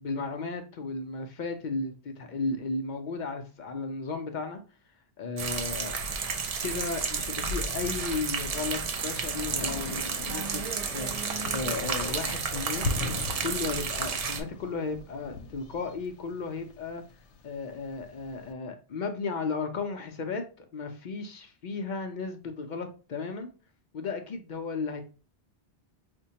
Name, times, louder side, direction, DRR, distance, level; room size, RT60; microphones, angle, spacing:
voice 1, 0.0-4.6 5.2-6.0 6.6-10.6 10.9-12.9 13.4-17.0 17.4-23.5 23.9-25.0, left 4 dB, 55° left, 0.5 m, -34 dB
sound 1, 5.4-14.4, right 5 dB, 60° right, 0.4 m, -32 dB
Thunder, 6.5-18.5, left 3 dB, 85° left, 0.9 m, -41 dB
5.1 x 2.1 x 2.7 m
omnidirectional pair, 1.1 m